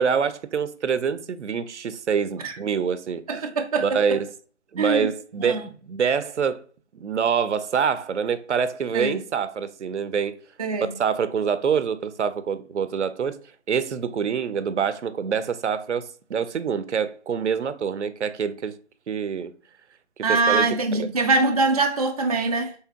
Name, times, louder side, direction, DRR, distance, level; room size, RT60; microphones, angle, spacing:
voice 1, 0.0-3.5 3.8-4.3 4.7-6.6 6.9-10.3 11.0-13.4 13.7-18.7 19.1-19.5 20.3-20.7, right 6 dB, 80° right, 0.6 m, -25 dB
voice 2, 3.3-4.2 4.8-5.1 5.4-5.6 8.9-9.1 10.6-10.9 20.2-22.7, right 3 dB, 35° right, 0.4 m, -23 dB
3.3 x 2.8 x 4.5 m
figure-of-eight pair, 155°, 34 cm